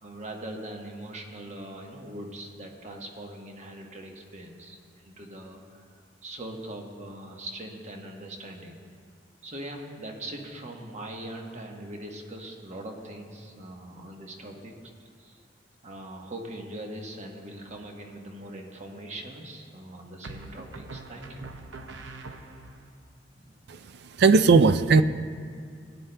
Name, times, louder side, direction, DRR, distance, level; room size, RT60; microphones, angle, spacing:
voice 1, 0.0-4.8 5.0-5.8 6.2-8.8 9.4-14.7 15.2-15.4 15.8-21.4 23.3-23.6, right 1 dB, 40° right, 1 dB, 1.0 m, -41 dB
sound 1, 17.6-18.1 20.2-22.9, right 2 dB, 85° right, 0.7 m, -43 dB
voice 2, 23.7-25.0, right 4 dB, 60° right, 11 dB, 0.3 m, -19 dB
17.0 x 9.5 x 2.2 m, 2.1 s
head